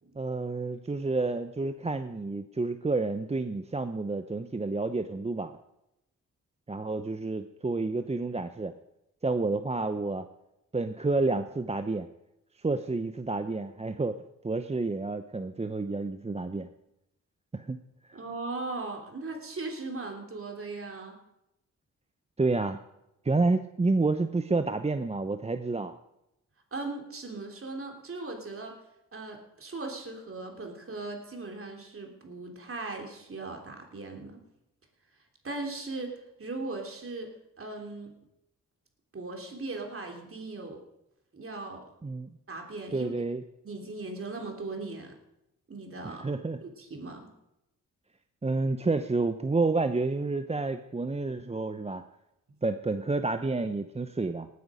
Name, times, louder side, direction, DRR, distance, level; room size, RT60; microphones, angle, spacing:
voice 1, 0.2-5.5 6.7-8.7 9.2-10.3 10.7-12.1 12.6-16.7 17.5-17.8 18.1-18.2 22.4-22.8 23.2-26.0 42.0-42.3 42.9-43.4 46.0-46.6 48.4-52.0 52.6-54.5, right 3 dB, 20° right, 9 dB, 0.8 m, -29 dB
voice 2, 18.1-21.2 26.7-28.7 29.1-34.4 35.4-37.3 37.6-38.1 39.1-40.8 41.3-41.8 42.5-43.1 43.6-45.1 45.7-46.3 46.6-47.3, right 3 dB, 45° right, 2 dB, 3.4 m, -38 dB
18.5 x 9.6 x 5.1 m, 0.87 s
cardioid pair, 55°, 31 cm